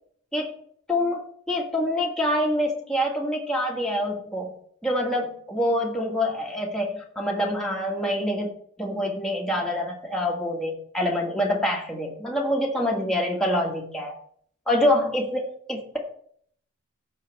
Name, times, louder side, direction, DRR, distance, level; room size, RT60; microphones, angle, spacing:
voice 1, 0.9-4.5 4.8-8.5 8.8-14.1 14.7-16.0, left 1 dB, 5° left, -3 dB, 1.9 m, -26 dB
16.5 x 6.6 x 3.5 m, 0.62 s
head